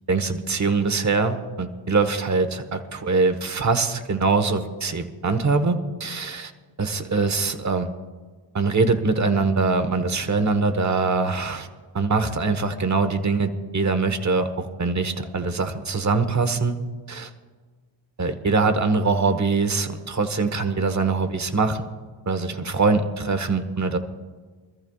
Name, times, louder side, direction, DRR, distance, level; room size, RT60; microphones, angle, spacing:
voice 1, 0.1-6.5 6.8-7.9 8.5-11.7 11.9-16.8 17.1-17.3 18.2-21.9 22.3-24.0, right 4 dB, 35° right, 8 dB, 1.4 m, -23 dB
25.0 x 14.0 x 2.4 m, 1.4 s
cardioid pair, 85°, 50 cm